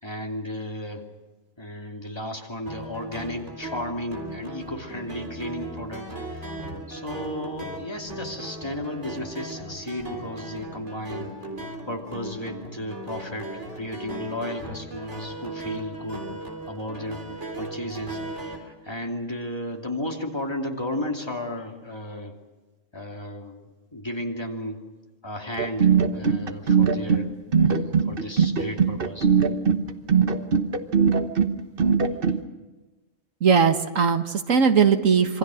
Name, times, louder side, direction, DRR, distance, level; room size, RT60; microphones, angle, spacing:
voice 1, 0.0-1.1 1.6-11.3 11.9-16.3 16.7-17.3 17.6-22.4 22.9-23.6 23.9-24.8 25.2-27.3 27.6-29.3 32.3-32.4, left 1 dB, 20° left, 1 dB, 2.8 m, -34 dB
sound 1, 2.7-18.6, right 2 dB, 65° right, 3.9 m, -37 dB
sound 2, 25.6-32.4, right 6 dB, 50° right, 1.3 m, -21 dB
voice 2, 33.4-35.4, right 6 dB, 90° right, 7 dB, 1.9 m, -19 dB
26.5 x 24.5 x 6.4 m, 1.2 s
omnidirectional pair, 1.3 m